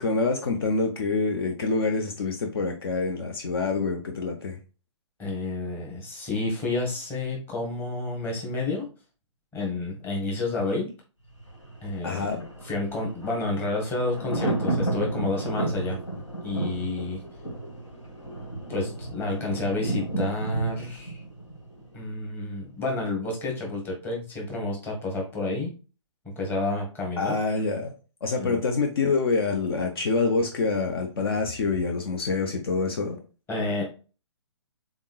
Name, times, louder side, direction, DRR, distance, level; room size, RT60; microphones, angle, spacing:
voice 1, 0.0-4.6 12.0-12.5 27.2-27.9 28.2-33.2, left 4 dB, 50° left, 3 dB, 0.7 m, -26 dB
voice 2, 5.2-8.9 9.5-10.9 11.8-12.3 12.6-17.2 18.7-21.2 21.9-25.7 26.2-27.4 28.4-28.6 33.5-33.8, left 2 dB, 15° left, -1 dB, 1.2 m, -30 dB
Thunder, 11.3-22.3 22.6-22.7, right 2 dB, 90° left, 1.8 m, -32 dB
3.7 x 3.6 x 2.3 m, 0.34 s
figure-of-eight pair, 130°, 16 cm